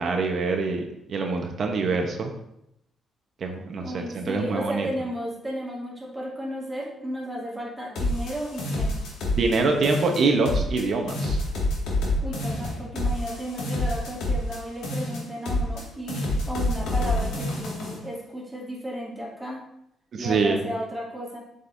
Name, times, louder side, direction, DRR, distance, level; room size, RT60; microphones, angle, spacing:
voice 1, 0.0-2.3 3.4-4.9 9.3-11.4 20.1-20.6, right 3 dB, 55° right, 3 dB, 1.0 m, -25 dB
voice 2, 3.8-8.9 12.2-19.6 20.2-21.4, equal, 10° right, -6 dB, 2.7 m, -34 dB
sound 1, 7.9-9.6 9.8-10.8 11.1-14.6 14.8-15.8 16.1-18.0, left 1 dB, 85° left, 2.0 m, -27 dB
7.9 x 5.4 x 2.7 m, 0.80 s
cardioid pair, 90°, 0 cm